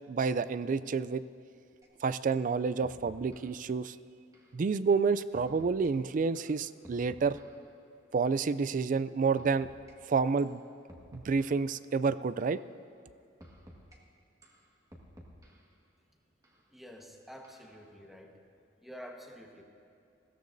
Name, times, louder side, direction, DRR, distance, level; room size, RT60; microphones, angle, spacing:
voice 1, 0.1-1.2 2.0-4.0 4.5-7.4 8.1-9.7 10.1-10.6 11.1-12.6, right 5 dB, 45° right, 15 dB, 0.4 m, -29 dB
sound 1, 1.8-1.9 2.3-2.5 2.8-3.6 4.3-4.6 5.3-5.9 6.3-7.7 8.4-8.6 9.4-9.9 10.4-10.6 10.9-11.7 12.4-12.7 13.4-14.0 14.4-15.7 16.4-16.6 17.4-17.8, equal, 20° right, 1.7 m, -54 dB
voice 2, 16.7-18.4 18.8-19.6, equal, ahead, 1 dB, 1.3 m, -48 dB
21.0 x 16.0 x 2.7 m, 2.5 s
head